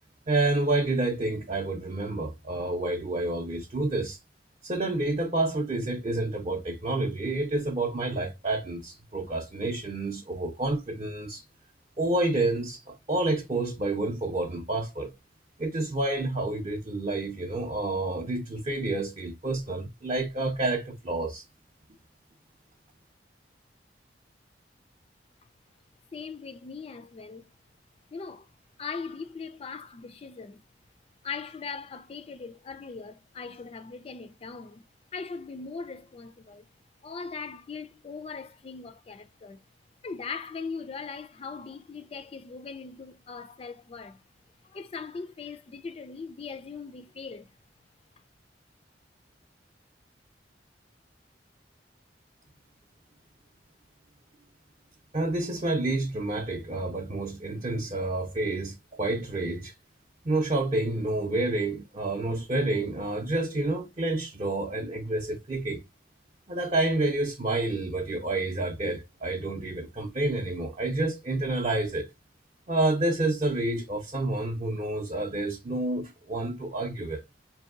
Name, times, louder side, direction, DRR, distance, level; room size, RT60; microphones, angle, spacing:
voice 1, 0.3-4.2 4.6-11.4 12.0-15.1 15.6-21.4 55.1-59.7 60.2-65.8 66.5-72.1 72.7-77.2, right 2 dB, 35° right, 0.5 m, -29 dB
voice 2, 26.1-27.5 28.1-28.5 28.8-30.7 31.2-34.9 35.1-36.7 37.0-39.6 40.0-44.2 44.6-47.5, left 5 dB, 35° left, 0.3 m, -40 dB
5.1 x 2.7 x 2.4 m
head